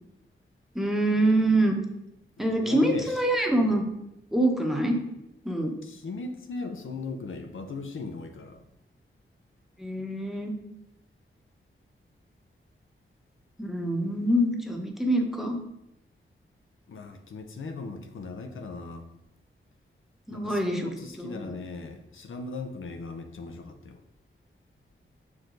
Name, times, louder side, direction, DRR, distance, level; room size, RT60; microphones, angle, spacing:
voice 1, 0.7-1.8 2.4-3.8 4.3-5.0 5.4-5.7 9.8-10.5 13.6-15.6 20.3-20.9 21.2-21.5, right 1 dB, ahead, 2 dB, 1.0 m, -25 dB
voice 2, 2.4-3.2 5.8-8.7 16.9-19.1 20.3-24.0, left 3 dB, 80° left, 6 dB, 0.7 m, -38 dB
6.2 x 4.9 x 3.8 m, 0.85 s
wide cardioid pair, 100°, 20 cm